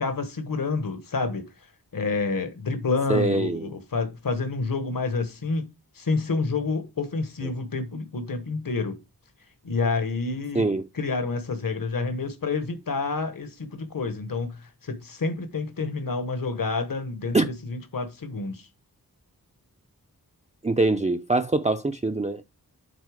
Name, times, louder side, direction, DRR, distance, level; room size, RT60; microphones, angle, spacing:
voice 1, 0.0-1.4 1.9-5.7 5.9-9.0 9.6-10.7 10.9-18.7, left 4 dB, 60° left, 1.2 m, -28 dB
voice 2, 3.1-3.7 10.5-10.9 17.3-17.5 20.6-22.4, right 2 dB, 20° right, 0.5 m, -23 dB
8.2 x 4.2 x 4.8 m
wide cardioid pair, 60°, 38 cm